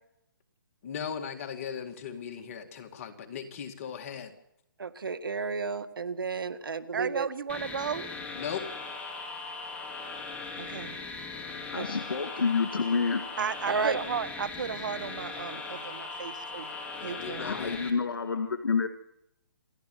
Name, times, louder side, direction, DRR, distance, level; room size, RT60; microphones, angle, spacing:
voice 1, 0.8-4.3 8.3-8.7 17.0-17.8, left 7 dB, 40° left, 2.1 m, -38 dB
voice 2, 4.8-7.3 11.8-11.9 13.7-14.0, right 4 dB, 85° right, 2.0 m, -32 dB
voice 3, 6.9-8.1 10.6-11.0 13.4-16.7 17.0-17.5, right 7 dB, 65° right, 1.5 m, -34 dB
sound 1, 7.5-17.9, left 4 dB, 10° left, 2.6 m, -39 dB
voice 4, 11.7-13.2 17.4-18.9, left 5 dB, 85° left, 2.1 m, -28 dB
27.5 x 12.5 x 9.4 m
hypercardioid pair, 155°, 11 cm